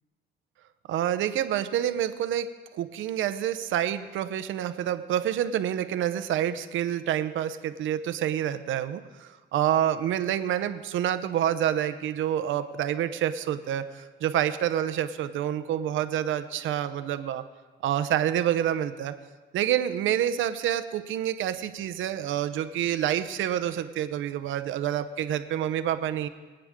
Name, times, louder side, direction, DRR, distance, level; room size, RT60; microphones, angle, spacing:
voice 1, 0.9-2.5 2.7-17.4 17.8-19.1 19.5-26.3, right 11 dB, 80° right, 11 dB, 0.8 m, -28 dB
24.0 x 8.9 x 3.7 m, 1.3 s
cardioid pair, 90°, 20 cm